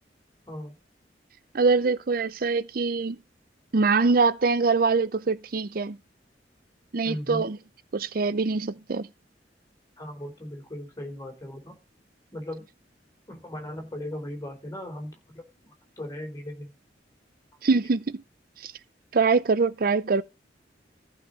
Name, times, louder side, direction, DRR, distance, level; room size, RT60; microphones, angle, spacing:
voice 1, 1.5-3.2 3.7-6.0 6.9-7.6 7.9-9.1 17.6-18.2 18.6-18.7 19.1-20.2, right 4 dB, 55° right, 0.6 m, -23 dB
voice 2, 7.0-7.5 10.0-11.7 12.3-12.6 13.3-15.4 16.0-16.7, left 1 dB, 20° left, 4.0 m, -37 dB
14.5 x 5.7 x 5.1 m
head